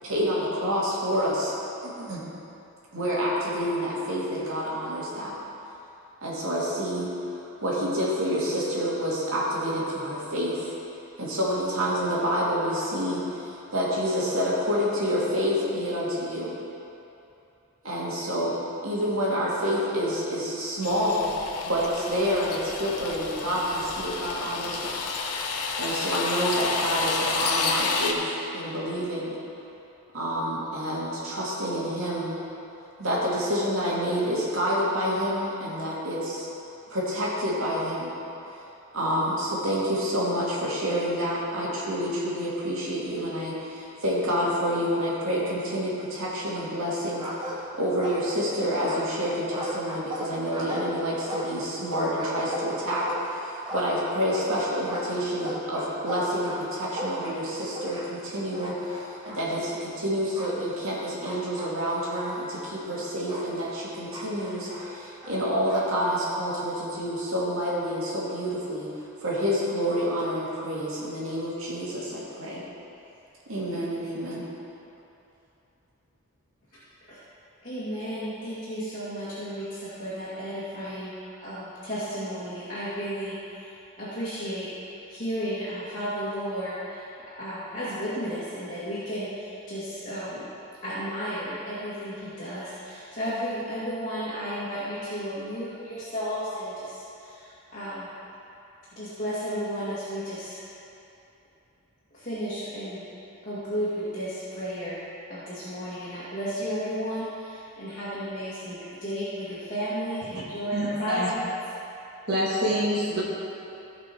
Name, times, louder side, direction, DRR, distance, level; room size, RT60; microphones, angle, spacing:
voice 1, 0.0-1.5 1.8-2.2 2.9-5.3 6.2-7.1 7.6-10.7 11.2-16.6 17.8-18.6 18.8-21.3 21.6-25.0 25.8-28.2 28.5-29.4 30.1-32.3 33.0-36.5 36.9-38.1 38.9-68.9 69.2-72.6 73.5-74.5, equal, 65° right, -6 dB, 2.4 m, -28 dB
sound 1, 20.8-28.1, left 4 dB, 90° left, 1.0 m, -30 dB
sound 2, 46.6-46.9 47.2-48.4 48.7-54.5 54.9-58.3 58.5-59.4 60.3-60.6 61.2-63.5 64.1-65.9, equal, 20° right, 1.2 m, -36 dB
voice 2, 77.6-83.4 84.0-84.7 85.1-90.4 90.8-98.1 99.0-100.6 102.1-103.1 103.4-105.0 105.3-111.5, equal, 35° left, -12 dB, 2.3 m, -33 dB
voice 3, 110.7-111.3 112.3-113.2, equal, 45° right, -8 dB, 2.0 m, -26 dB
16.0 x 5.4 x 4.6 m, 2.9 s
head